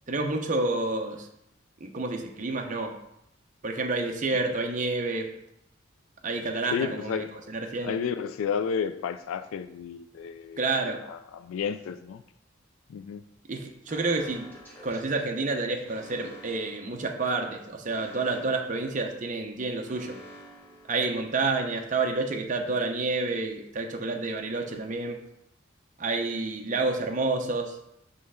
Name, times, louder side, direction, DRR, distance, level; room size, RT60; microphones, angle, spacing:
voice 1, 0.1-1.3 1.8-3.0 3.6-5.3 6.2-8.0 10.6-11.0 13.5-14.5 14.8-20.2 20.9-25.2 26.0-27.8, right 3 dB, 40° right, 3 dB, 0.6 m, -29 dB
voice 2, 6.7-7.3 7.8-10.6 11.1-12.2 12.9-13.2, left 7 dB, 85° left, 11 dB, 0.3 m, -31 dB
Alarm, 13.9-21.6, equal, 10° left, 1.3 m, -50 dB
5.4 x 3.3 x 5.6 m, 0.80 s
head